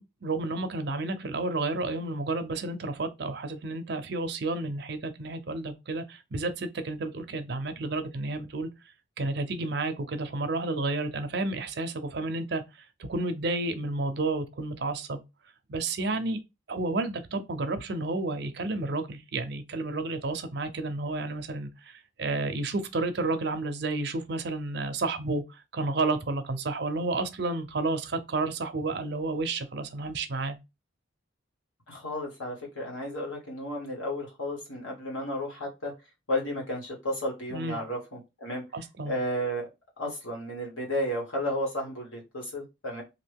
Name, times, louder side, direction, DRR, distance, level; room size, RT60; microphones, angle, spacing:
voice 1, 0.0-8.7 9.2-12.6 13.0-15.2 15.7-16.4 16.7-30.6 37.5-37.8 38.7-39.1, right 2 dB, 55° right, 0.5 m, -31 dB
voice 2, 31.9-35.9 36.3-38.6 39.0-39.7 40.0-43.0, left 1 dB, 90° left, 1.5 m, -33 dB
3.0 x 2.5 x 3.4 m
head